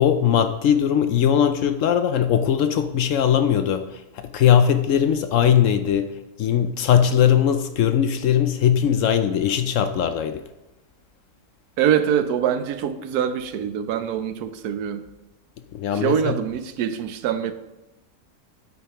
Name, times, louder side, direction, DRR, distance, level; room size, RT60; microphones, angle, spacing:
voice 1, 0.0-3.8 4.2-6.1 6.4-10.4 15.7-16.3, left 9 dB, 70° left, 9 dB, 0.8 m, -20 dB
voice 2, 11.8-15.0 15.9-17.5, right 9 dB, 85° right, 10 dB, 1.2 m, -24 dB
8.9 x 8.4 x 3.0 m, 0.98 s
omnidirectional pair, 1.6 m